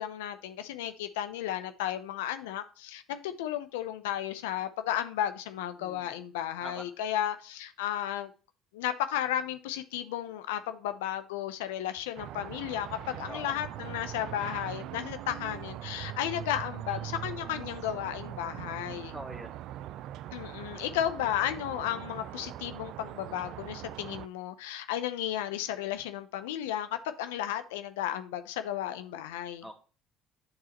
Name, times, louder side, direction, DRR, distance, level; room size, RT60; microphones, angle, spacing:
voice 1, 0.0-8.3 8.7-19.1 20.3-29.7, left 11 dB, 85° left, 0.6 m, -34 dB
voice 2, 5.8-6.1 6.6-6.8 13.3-13.5 19.1-19.5 29.6-29.8, right 1 dB, 10° right, 1.8 m, -43 dB
sound 1, 12.2-24.3, right 13 dB, 65° right, 0.4 m, -41 dB
8.5 x 4.8 x 2.9 m
hypercardioid pair, 70°, 0 cm